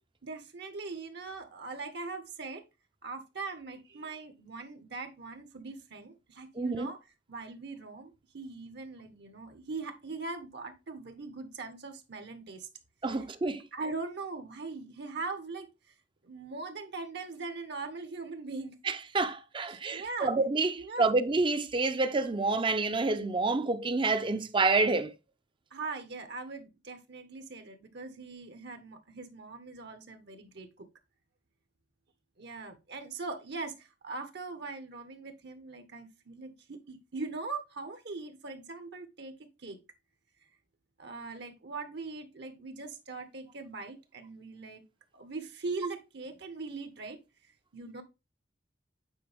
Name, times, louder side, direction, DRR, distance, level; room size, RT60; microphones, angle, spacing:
voice 1, 0.2-2.6 3.0-7.0 7.3-12.7 13.2-13.3 13.7-15.7 16.2-18.8 19.7-20.3 20.8-21.1 25.7-30.9 32.4-39.3 39.6-39.8 41.0-44.8 45.1-47.2 47.7-48.0, right 3 dB, 65° right, 1.3 m, -41 dB
voice 2, 6.6-6.9 13.0-13.6 18.9-25.1, right 3 dB, 25° right, 0.6 m, -28 dB
9.1 x 4.4 x 3.5 m
head